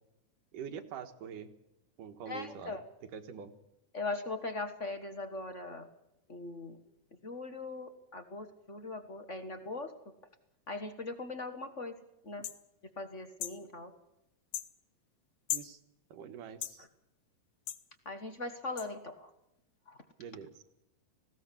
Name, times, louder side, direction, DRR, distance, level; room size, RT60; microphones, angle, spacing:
voice 1, 0.5-1.5 2.0-2.8 3.1-3.5 15.5-15.8 16.1-16.9 20.2-20.6, right 7 dB, 85° right, 9 dB, 3.0 m, -45 dB
voice 2, 2.3-2.8 3.9-5.9 6.3-6.8 7.2-9.9 10.7-11.9 12.2-12.4 13.0-13.9 18.0-19.3 19.9-20.0, left 3 dB, 50° left, 8 dB, 0.8 m, -40 dB
sound 1, 12.4-12.6 13.4-13.6 14.5-14.7 15.5-15.7 16.6-16.8 17.7-17.8 18.8-18.9, left 11 dB, 65° left, 1.9 m, -36 dB
19.5 x 17.0 x 8.4 m, 0.86 s
omnidirectional pair, 3.7 m